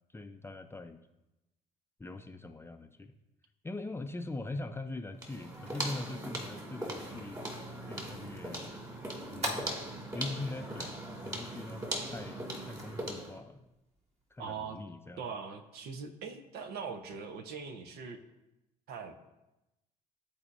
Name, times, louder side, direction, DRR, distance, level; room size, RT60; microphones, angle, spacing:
voice 1, 0.1-1.0 2.0-3.1 3.6-7.4 7.9-8.7 9.3-9.8 10.1-11.9 12.1-13.7 14.3-15.2, left 2 dB, 15° left, 6 dB, 0.5 m, -42 dB
sound 1, 5.0-14.8, equal, 35° right, 2.0 m, -47 dB
sound 2, 5.2-13.4, right 1 dB, 20° right, 2.3 m, -40 dB
voice 2, 14.4-14.8 15.2-18.2 18.9-19.1, right 5 dB, 65° right, 7 dB, 0.8 m, -41 dB
12.0 x 4.2 x 2.6 m, 0.96 s
hypercardioid pair, 55°, 18 cm